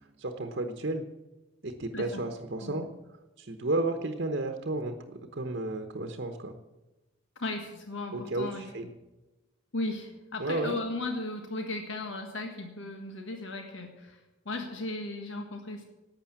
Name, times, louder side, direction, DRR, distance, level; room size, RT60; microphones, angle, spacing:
voice 1, 0.2-1.0 1.6-2.8 3.4-6.6 8.1-8.9 10.4-10.7, right 2 dB, 55° right, 5 dB, 1.1 m, -32 dB
voice 2, 7.3-8.9 9.7-15.8, left 2 dB, 70° left, 4 dB, 1.6 m, -36 dB
12.0 x 8.8 x 8.7 m, 1.1 s
head